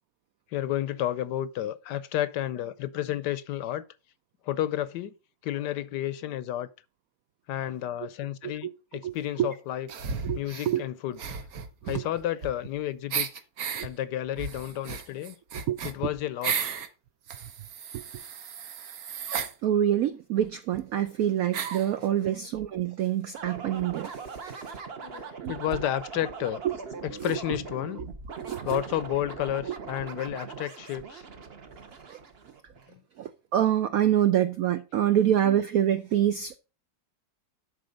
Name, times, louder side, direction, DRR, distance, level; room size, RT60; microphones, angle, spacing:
voice 1, 0.5-3.8 4.4-5.1 5.4-6.7 7.5-9.9 10.3-11.2 11.8-13.3 13.8-15.4 15.8-16.6 21.9-22.5 25.0-26.6 27.0-28.0 28.6-31.2 32.9-33.0 35.1-35.2, left 12 dB, 75° left, 1.1 m, -31 dB
sound 1, 9.9-10.7 11.1-12.8 13.1-13.9 14.3-16.9 17.3-19.5 20.4-20.5 20.7-20.8 21.5-21.9, right 6 dB, 55° right, 1.2 m, -34 dB
voice 2, 19.6-24.1 24.4-24.6 25.4-25.5 28.4-28.8 33.2-36.6, right 11 dB, 75° right, 0.8 m, -25 dB
sound 2, 23.3-32.9, right 5 dB, 40° right, 0.9 m, -41 dB
11.5 x 4.3 x 5.2 m
omnidirectional pair, 2.0 m